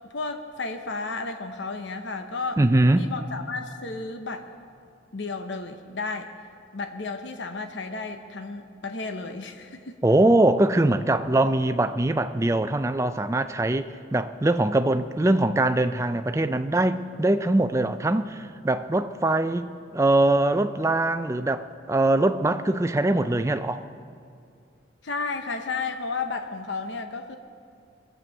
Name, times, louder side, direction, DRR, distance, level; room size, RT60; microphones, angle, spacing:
voice 1, 0.1-2.6 3.0-4.5 5.1-6.3 6.7-10.0 25.0-27.4, left 4 dB, 85° left, 6 dB, 0.9 m, -33 dB
voice 2, 2.6-3.1 10.0-23.8, right 2 dB, 15° right, 10 dB, 0.4 m, -22 dB
22.0 x 7.7 x 6.4 m, 2.3 s
head